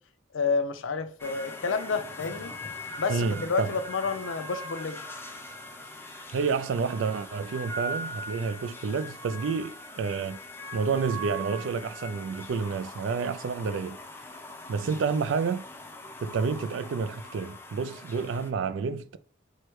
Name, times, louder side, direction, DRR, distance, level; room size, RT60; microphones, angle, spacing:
voice 1, 0.3-2.5 3.0-5.0, left 4 dB, 85° left, 0.6 m, -29 dB
sound 1, 1.2-18.5, equal, 10° left, 0.4 m, -41 dB
voice 2, 3.1-3.7 6.3-10.4 10.7-14.0 14.7-15.6 16.2-19.2, right 5 dB, 75° right, 0.3 m, -29 dB
4.6 x 2.1 x 4.5 m
head